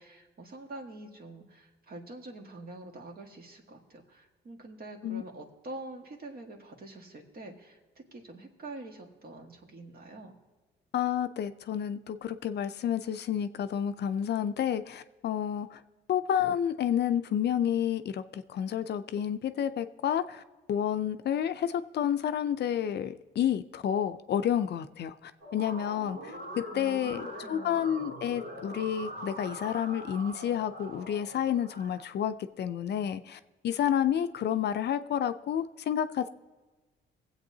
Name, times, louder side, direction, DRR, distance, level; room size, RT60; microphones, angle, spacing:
voice 1, 0.0-7.8 8.1-10.3 26.7-27.8, right 2 dB, 50° right, 2 dB, 1.7 m, -46 dB
voice 2, 10.9-15.8 16.1-20.4 20.7-36.3, left 9 dB, 60° left, 11 dB, 0.5 m, -30 dB
sound 1, 25.4-32.0, right 1 dB, 75° right, 3.3 m, -43 dB
21.0 x 8.1 x 2.8 m, 1.3 s
cardioid pair, 90°, 20 cm